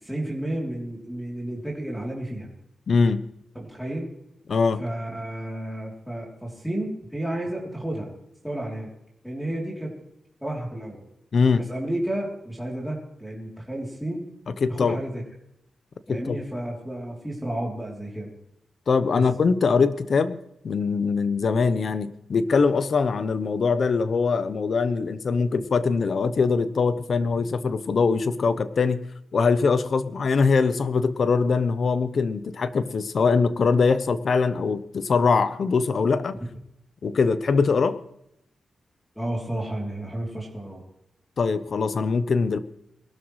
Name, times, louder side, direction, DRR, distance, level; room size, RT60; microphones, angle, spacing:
voice 1, 0.0-2.5 3.5-4.1 4.8-8.1 8.4-8.9 9.2-9.9 10.4-11.0 11.5-14.2 14.7-15.2 16.1-18.3 19.1-19.3 39.1-40.8, right 1 dB, ahead, -2 dB, 3.2 m, -31 dB
voice 2, 2.9-3.2 4.5-4.8 11.3-11.6 14.6-15.0 16.1-16.4 18.9-20.4 20.6-29.0 29.3-36.4 37.0-38.0 41.4-42.6, left 4 dB, 60° left, 13 dB, 0.8 m, -22 dB
22.0 x 12.5 x 3.2 m, 0.79 s
cardioid pair, 95°, 0 cm